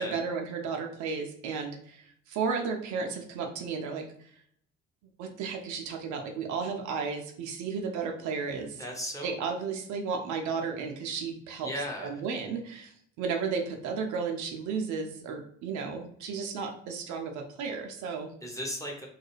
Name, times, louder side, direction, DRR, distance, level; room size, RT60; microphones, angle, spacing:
voice 1, 0.0-4.3 5.2-8.8 9.2-11.7 12.0-18.3, right 5 dB, 55° right, 3 dB, 0.5 m, -33 dB
voice 2, 8.8-9.4 11.6-12.1 18.4-19.1, equal, 10° left, -1 dB, 0.7 m, -36 dB
2.3 x 2.2 x 3.0 m, 0.65 s
figure-of-eight pair, 45°, 35 cm